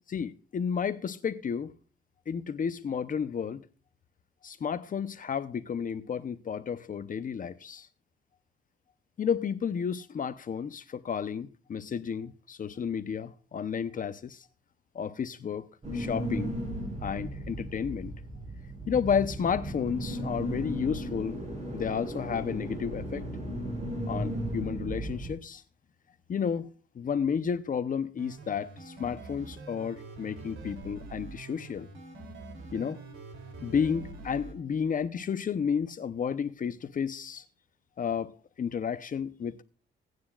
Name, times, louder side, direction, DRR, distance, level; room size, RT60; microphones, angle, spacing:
voice 1, 0.1-1.7 2.3-3.6 4.4-7.9 9.2-14.4 14.9-15.7 15.9-16.5 17.0-18.1 18.9-21.4 21.7-23.2 24.1-25.6 26.3-26.7 27.0-31.9 32.7-33.0 33.6-37.4 38.0-38.3 38.6-39.6, left 7 dB, 45° left, 0.8 m, -32 dB
sound 1, 15.8-25.3, equal, 35° right, 6.9 m, -35 dB
sound 2, 28.2-34.5, right 3 dB, 75° right, 3.1 m, -45 dB
17.5 x 9.4 x 2.5 m
cardioid pair, 90°, 20 cm